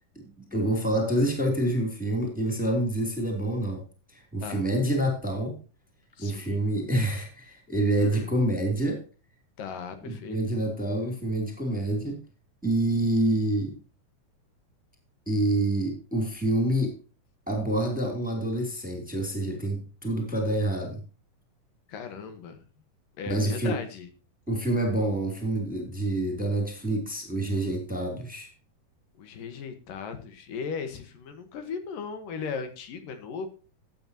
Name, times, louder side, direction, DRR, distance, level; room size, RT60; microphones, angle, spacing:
voice 1, 0.1-3.8 4.1-5.6 6.2-9.0 10.0-12.2 12.6-13.7 15.3-16.9 17.5-21.0 23.3-23.8 24.5-28.5, right 1 dB, ahead, 2 dB, 2.8 m, -27 dB
voice 2, 6.2-6.6 8.0-8.3 9.6-10.4 21.9-22.6 23.2-24.1 29.2-33.5, left 6 dB, 75° left, 8 dB, 3.1 m, -37 dB
15.0 x 9.3 x 3.0 m, 0.35 s
omnidirectional pair, 4.0 m